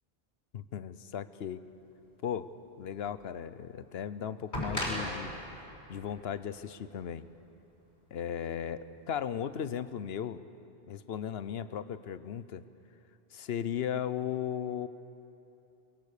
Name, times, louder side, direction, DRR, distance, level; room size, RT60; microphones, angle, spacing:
voice 1, 0.5-1.6 2.2-5.3 5.9-7.3 8.1-10.4 10.9-12.6 13.3-14.9, left 9 dB, 80° left, 14 dB, 1.0 m, -36 dB
sound 1, 3.1-3.2 4.5-7.4 8.6-8.7, equal, 50° left, 5.9 m, -37 dB
23.5 x 22.0 x 6.7 m, 2.9 s
omnidirectional pair, 1.0 m